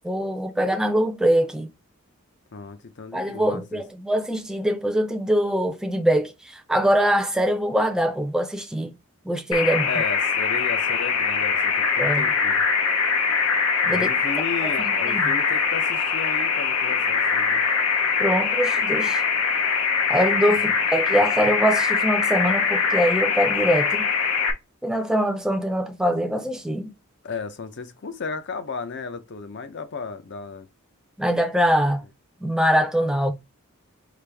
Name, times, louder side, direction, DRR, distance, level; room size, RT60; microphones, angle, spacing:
voice 1, 0.0-1.7 3.1-9.0 9.2-10.0 12.0-12.3 13.8-14.1 14.6-15.3 18.2-19.2 20.1-24.1 24.8-26.9 31.2-32.0 32.4-33.3, equal, 5° right, 0.5 m, -23 dB
voice 2, 2.5-3.8 9.9-12.7 13.9-17.6 27.2-30.7, left 4 dB, 55° left, 0.6 m, -34 dB
sound 1, 9.5-24.5, left 5 dB, 90° left, 0.8 m, -22 dB
4.9 x 2.5 x 3.4 m
head